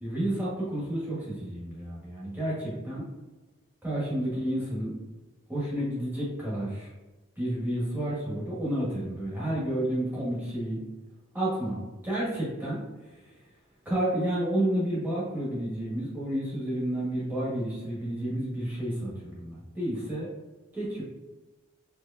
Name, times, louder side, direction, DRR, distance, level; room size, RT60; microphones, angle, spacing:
voice 1, 0.0-3.0 3.8-4.9 5.5-6.9 7.4-10.8 11.3-12.8 13.8-20.3 20.7-21.0, right 1 dB, 10° right, -8 dB, 1.3 m, -30 dB
4.4 x 3.0 x 2.6 m, 1.2 s
head